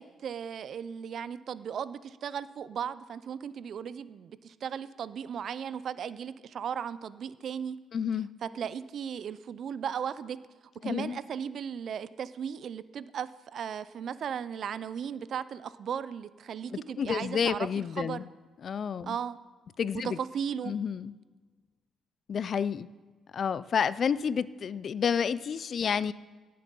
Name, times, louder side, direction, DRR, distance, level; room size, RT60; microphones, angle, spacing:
voice 1, 0.0-7.8 8.4-10.4 10.8-18.3 19.0-19.4 20.0-20.7, right 8 dB, 60° right, 16 dB, 0.5 m, -36 dB
voice 2, 7.9-8.3 10.8-11.2 17.0-18.3 18.6-19.2 19.8-20.2 20.7-21.1 22.3-22.9 23.3-26.1, left 7 dB, 50° left, 18 dB, 0.4 m, -30 dB
17.0 x 7.7 x 5.4 m, 1.4 s
cardioid pair, 90°, 0 cm